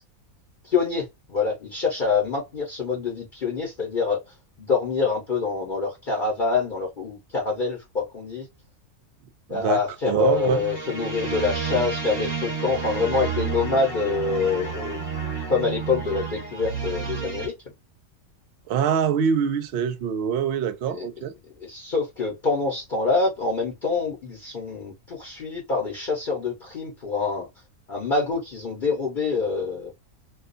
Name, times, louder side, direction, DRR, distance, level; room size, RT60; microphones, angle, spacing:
voice 1, 0.6-4.2 4.6-8.5 9.5-15.0 15.5-17.5 20.9-21.1 21.6-27.5 27.9-29.9, left 4 dB, 45° left, 0.8 m, -26 dB
voice 2, 9.5-9.8 10.1-10.6 18.7-21.3, right 8 dB, 65° right, 0.6 m, -24 dB
sound 1, 10.2-17.5, right 5 dB, 35° right, 1.0 m, -31 dB
2.4 x 2.3 x 2.5 m
omnidirectional pair, 1.4 m